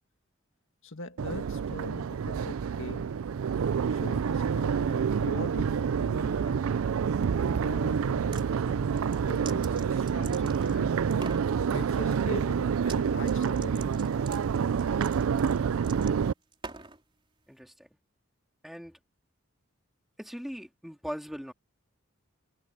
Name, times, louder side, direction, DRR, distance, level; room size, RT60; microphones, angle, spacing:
voice 1, 0.8-3.2 3.9-6.7 7.4-8.9 9.3-11.0 11.7-14.1, left 2 dB, 65° left, 1.9 m, -42 dB
Crowd, 1.2-16.3, right 6 dB, 85° right, 0.4 m, -28 dB
sound 1, 8.2-8.5 9.0-10.8 11.1-11.5 12.8-13.0 13.3-17.0, right 4 dB, 25° right, 3.7 m, -45 dB
voice 2, 17.5-18.0 18.6-19.0 20.2-21.5, equal, ahead, 3.4 m, -40 dB
head